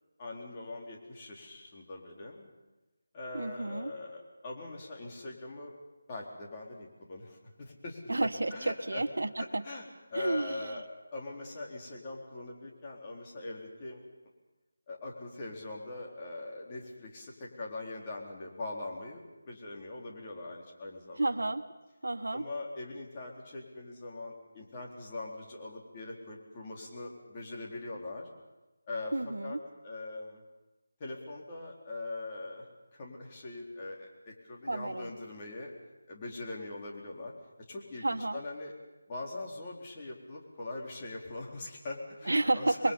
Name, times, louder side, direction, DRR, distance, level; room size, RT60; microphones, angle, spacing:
voice 1, 0.2-2.5 3.1-5.7 6.1-8.0 8.5-9.0 9.4-9.8 10.1-10.8 11.1-14.0 14.9-21.3 22.3-28.3 28.9-29.6 29.8-30.4 31.0-32.7 32.9-35.7 36.1-37.3 37.7-38.7 39.1-42.9, left 2 dB, 25° left, -2 dB, 4.1 m, -42 dB
voice 2, 3.3-3.9 8.1-9.6 10.1-10.6 21.2-21.6 22.0-22.4 29.1-29.6 34.7-35.1 38.0-38.4 42.3-42.9, right 2 dB, 85° right, 9 dB, 1.4 m, -31 dB
28.5 x 22.0 x 5.6 m, 1.1 s
figure-of-eight pair, 170°, 0 cm